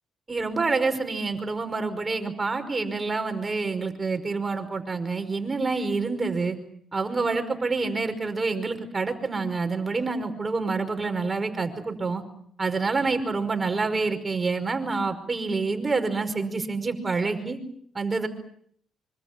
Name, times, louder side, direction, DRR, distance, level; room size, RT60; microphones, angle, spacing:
voice 1, 0.3-6.6 6.9-12.2 12.6-17.6 18.0-18.3, right 4 dB, 25° right, 7 dB, 5.2 m, -27 dB
25.5 x 25.0 x 7.6 m, 0.66 s
cardioid pair, 90°, 0 cm